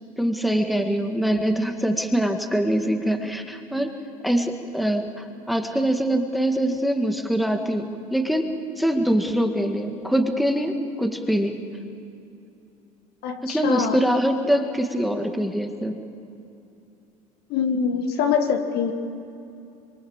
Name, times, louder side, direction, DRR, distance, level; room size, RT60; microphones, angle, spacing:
voice 1, 0.2-3.9 4.2-8.5 8.8-11.6 13.4-16.0, right 1 dB, ahead, 5 dB, 2.0 m, -23 dB
voice 2, 13.2-14.0 14.4-14.6 17.5-18.9, left 6 dB, 60° left, 6 dB, 1.9 m, -24 dB
24.5 x 23.0 x 7.4 m, 2.7 s
hypercardioid pair, 85°, 19 cm